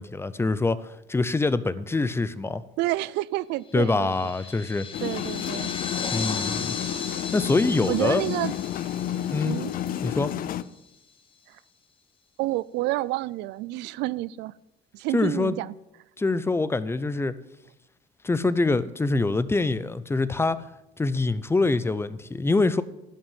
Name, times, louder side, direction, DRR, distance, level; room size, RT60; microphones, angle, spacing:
voice 1, 0.0-2.6 3.7-4.9 6.1-6.7 7.2-8.2 9.3-9.6 10.0-10.3 15.1-15.6 16.2-17.4 18.2-20.6 21.0-22.8, left 3 dB, 15° left, 15 dB, 0.6 m, -25 dB
voice 2, 2.8-4.2 5.0-5.7 7.9-8.5 9.4-9.7 11.5-11.6 12.4-14.5 14.9-15.7, right 17 dB, 85° right, 20 dB, 0.4 m, -29 dB
sound 1, 3.8-10.6, left 5 dB, 30° left, 1.2 m, -36 dB
sound 2, 4.9-10.6, left 11 dB, 55° left, 0.5 m, -31 dB
11.0 x 6.1 x 9.1 m, 0.92 s
cardioid pair, 110°, 17 cm